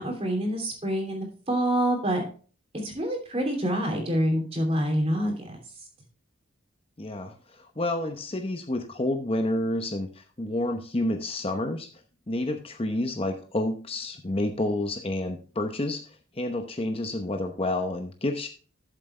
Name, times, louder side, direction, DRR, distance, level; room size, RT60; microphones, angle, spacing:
voice 1, 0.0-2.2 2.8-5.6, right 1 dB, 30° right, 2 dB, 2.8 m, -26 dB
voice 2, 7.0-11.9 12.3-18.5, left 1 dB, 25° left, 5 dB, 0.8 m, -29 dB
12.0 x 7.4 x 3.3 m, 0.39 s
head